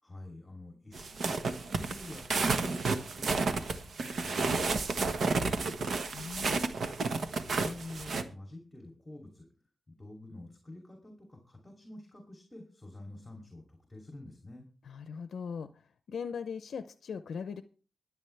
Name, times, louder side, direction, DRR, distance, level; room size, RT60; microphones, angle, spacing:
voice 1, 0.0-4.6 4.9-5.9 7.4-9.5 9.9-14.7, left 1 dB, 15° left, 1 dB, 2.9 m, -48 dB
sound 1, 0.9-8.2, right 4 dB, 65° right, 1.3 m, -31 dB
voice 2, 6.1-6.7 14.8-15.7 16.1-17.6, left 6 dB, 75° left, 10 dB, 0.6 m, -39 dB
23.0 x 8.1 x 3.4 m, 0.40 s
wide cardioid pair, 110°, 0 cm